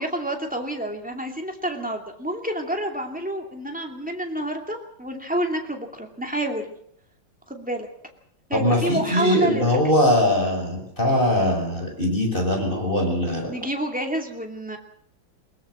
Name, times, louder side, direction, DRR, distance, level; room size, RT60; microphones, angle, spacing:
voice 1, 0.0-6.7 7.5-7.9 8.5-9.8 13.5-14.8, right 1 dB, 5° right, 2 dB, 2.4 m, -28 dB
voice 2, 8.5-13.5, left 1 dB, 25° left, 2 dB, 5.7 m, -21 dB
21.0 x 20.0 x 6.3 m, 0.67 s
omnidirectional pair, 2.2 m